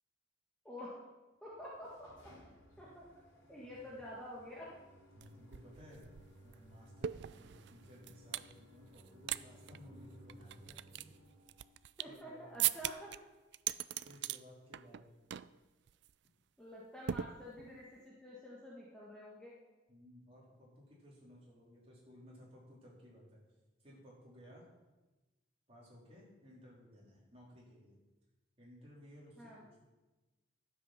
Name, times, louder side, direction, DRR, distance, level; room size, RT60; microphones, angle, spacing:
voice 1, 0.6-1.0 1.4-2.3 2.8-3.0 3.5-4.7 12.0-13.2 16.6-19.5 29.4-29.6, equal, 5° left, -6 dB, 1.7 m, -49 dB
sound 1, 1.5-11.8, equal, 85° left, 4.0 m, -60 dB
voice 2, 3.6-4.0 5.1-6.1 6.4-11.1 12.0-12.6 14.0-15.0 19.9-23.4 23.8-24.6 25.7-28.0 28.6-29.8, equal, 30° right, -5 dB, 3.8 m, -58 dB
sound 2, 5.2-5.3 5.5-8.5 8.9-9.4 9.7-9.8 10.3-12.2 12.6-13.2 13.5-14.4 14.7-15.0 15.3-15.6 15.9-16.1 17.1-17.8, right 12 dB, 60° right, 0.3 m, -39 dB
12.5 x 7.9 x 5.8 m, 1.1 s
head